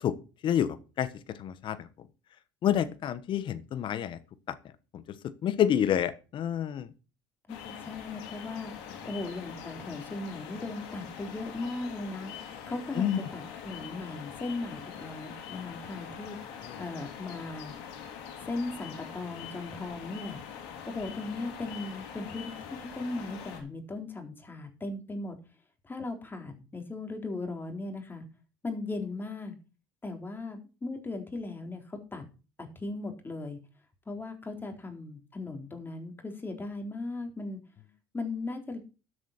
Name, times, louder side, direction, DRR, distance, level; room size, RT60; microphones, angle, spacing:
voice 1, 0.4-1.9 2.6-4.2 4.5-4.6 4.9-5.0 5.4-6.9 13.0-13.2 16.7-16.8, left 10 dB, 55° left, 14 dB, 1.3 m, -28 dB
sound 1, 7.5-23.6, left 8 dB, 75° left, 3.4 m, -43 dB
voice 2, 7.5-17.7 18.5-20.4 20.9-25.4 25.8-28.3 28.6-29.6 30.0-32.2 32.6-33.6 34.1-37.6 38.1-38.8, left 2 dB, 20° left, 4 dB, 3.9 m, -38 dB
12.5 x 7.9 x 4.4 m, 0.33 s
supercardioid pair, 75°, 10 cm